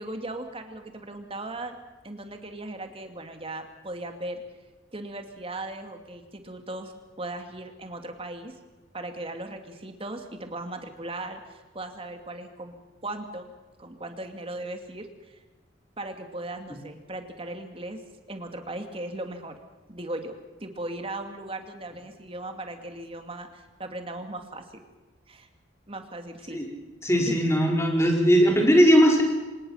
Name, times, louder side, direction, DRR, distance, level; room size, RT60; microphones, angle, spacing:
voice 1, 0.0-1.8 2.0-4.4 4.9-6.9 7.2-8.5 8.9-12.7 13.0-13.5 13.8-15.4 16.0-18.0 18.3-19.6 19.9-20.3 20.6-24.8 25.3-25.5 25.9-26.6, right 2 dB, 30° right, 6 dB, 2.5 m, -37 dB
voice 2, 27.0-29.2, equal, 15° left, 1 dB, 4.8 m, -19 dB
25.5 x 20.0 x 5.7 m, 1.3 s
head